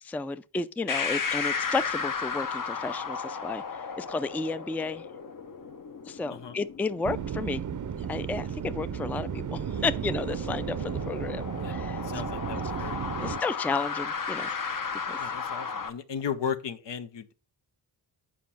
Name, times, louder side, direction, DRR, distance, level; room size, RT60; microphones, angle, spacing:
voice 1, 0.0-5.1 6.1-7.7 8.1-12.2 13.2-14.5 15.0-15.3, left 3 dB, 5° left, 0.3 m, -32 dB
sound 1, 0.9-15.9, left 5 dB, 50° left, 0.9 m, -35 dB
sound 2, 7.0-13.4, right 8 dB, 45° right, 0.6 m, -34 dB
voice 2, 11.6-13.4 15.2-17.3, left 7 dB, 75° left, 0.9 m, -36 dB
7.4 x 5.0 x 5.7 m
cardioid pair, 80°, 43 cm